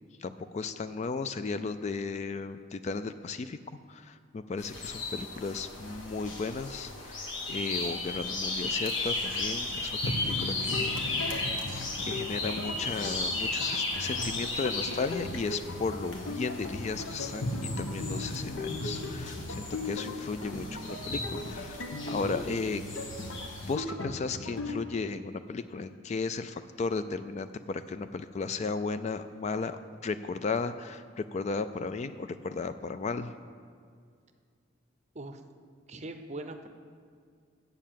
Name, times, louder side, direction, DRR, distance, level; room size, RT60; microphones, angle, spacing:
voice 1, 0.2-3.6 3.9-11.7 12.0-22.8 23.6-33.3, left 4 dB, 35° left, 11 dB, 0.3 m, -35 dB
sound 1, 4.6-23.7, left 2 dB, 70° left, 1.4 m, -36 dB
sound 2, 10.0-24.8, left 2 dB, 90° left, 0.9 m, -37 dB
voice 2, 35.9-36.7, right 2 dB, 35° right, 7 dB, 0.6 m, -40 dB
8.3 x 6.9 x 7.4 m, 2.1 s
head